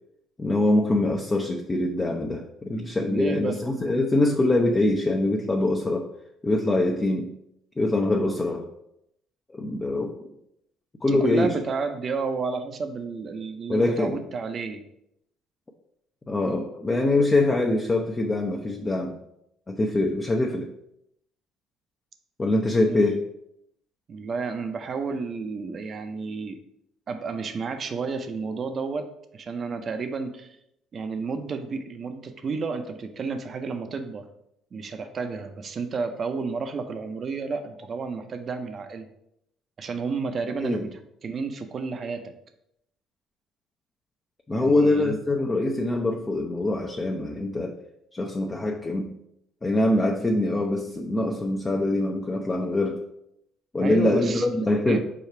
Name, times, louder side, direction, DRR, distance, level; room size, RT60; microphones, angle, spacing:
voice 1, 0.4-6.1 6.4-7.3 7.8-8.7 9.5-10.3 11.0-11.6 13.7-14.2 16.3-19.2 19.7-20.7 22.4-23.2 40.6-40.9 44.5-47.8 48.1-49.1 49.6-53.0 53.7-55.0, left 2 dB, 25° left, 1 dB, 0.5 m, -24 dB
voice 2, 2.7-3.6 11.1-14.8 22.9-23.0 24.1-26.6 27.1-30.6 30.9-34.3 34.7-39.1 39.8-40.9 41.2-42.3 44.5-45.2 53.8-54.4 54.9-55.0, right 4 dB, 45° right, 7 dB, 0.5 m, -31 dB
4.8 x 2.3 x 4.5 m, 0.77 s
hypercardioid pair, 60°, 0 cm